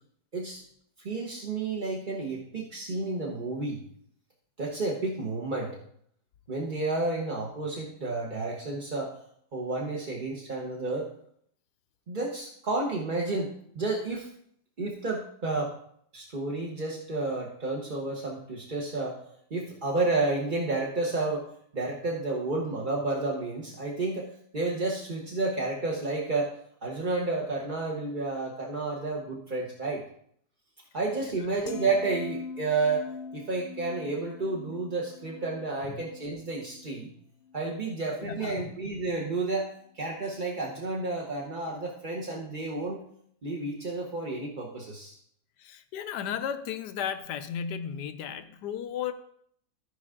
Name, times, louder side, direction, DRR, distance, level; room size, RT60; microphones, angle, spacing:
voice 1, 1.0-3.8 4.6-5.8 6.5-9.3 9.5-11.1 12.1-14.3 14.8-15.7 16.1-26.6 26.8-30.0 30.9-37.1 37.5-43.0 43.4-45.2, right 3 dB, 30° right, -3 dB, 1.0 m, -31 dB
sound 1, 31.6-37.9 38.3-38.6, left 5 dB, 55° left, 1.0 m, -43 dB
voice 2, 38.2-38.7 45.6-49.1, left 8 dB, 75° left, 10 dB, 1.2 m, -34 dB
14.5 x 5.2 x 3.7 m, 0.68 s
omnidirectional pair, 1.9 m